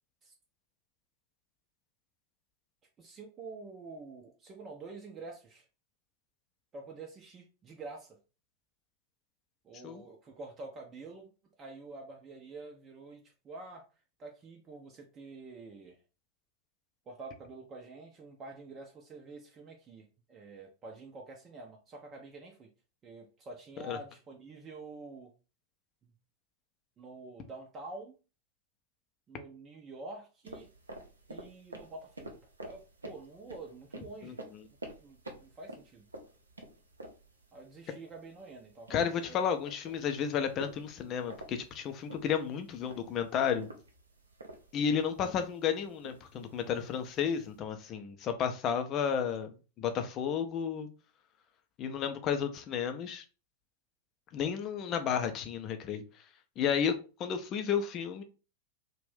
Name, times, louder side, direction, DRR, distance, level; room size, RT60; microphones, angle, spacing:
voice 1, 3.0-5.7 6.7-8.2 9.6-11.3 11.6-13.8 14.2-16.0 17.1-22.7 23.0-25.3 26.0-26.1 27.0-28.1 29.3-30.7 31.3-32.4 32.7-34.4 35.0-36.1 37.5-39.0 39.3-39.4, right 3 dB, 25° right, 0.5 m, -47 dB
sound 1, 30.4-47.6, right 1 dB, 75° right, 0.5 m, -50 dB
voice 2, 34.2-34.6 38.9-43.7 44.7-50.9 51.8-53.2 54.3-56.0 56.6-56.9 57.2-58.2, left 7 dB, 35° left, 0.4 m, -32 dB
2.5 x 2.1 x 3.4 m
figure-of-eight pair, 90°, 0 cm